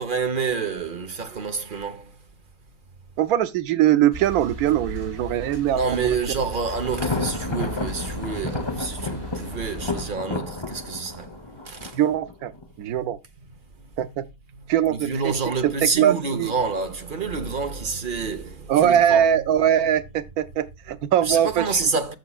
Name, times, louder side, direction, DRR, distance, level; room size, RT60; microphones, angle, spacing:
voice 1, 0.0-2.2 5.7-12.0 12.8-13.0 13.5-13.9 14.5-19.3 21.2-22.1, right 5 dB, 40° right, 1.1 m, -28 dB
voice 2, 3.2-5.8 11.9-12.5 12.8-13.2 14.0-14.2 14.7-15.1 15.6-15.7 16.0-16.5 18.7-21.6, right 10 dB, 90° right, 1.1 m, -21 dB
sound 1, 4.1-10.1, right 1 dB, 70° right, 3.4 m, -37 dB
Thunder, 6.9-12.7, left 3 dB, 20° left, 0.9 m, -31 dB
14.5 x 5.6 x 2.4 m
omnidirectional pair, 1.5 m